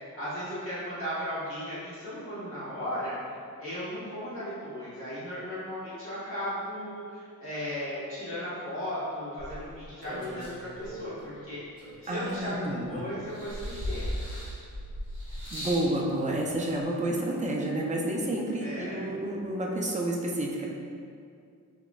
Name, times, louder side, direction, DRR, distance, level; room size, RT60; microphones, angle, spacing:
voice 1, 0.1-3.1 3.6-11.6 12.0-14.2 18.6-19.0, equal, 40° left, -11 dB, 1.3 m, -36 dB
sound 1, 9.4-11.2 11.8-12.8 13.3-15.9 16.8-16.9, equal, 15° left, 1.5 m, -37 dB
voice 2, 12.1-13.0 15.5-20.7, right 1 dB, 25° right, -2 dB, 0.5 m, -30 dB
4.9 x 4.3 x 2.3 m, 2.3 s
wide cardioid pair, 170°, 32 cm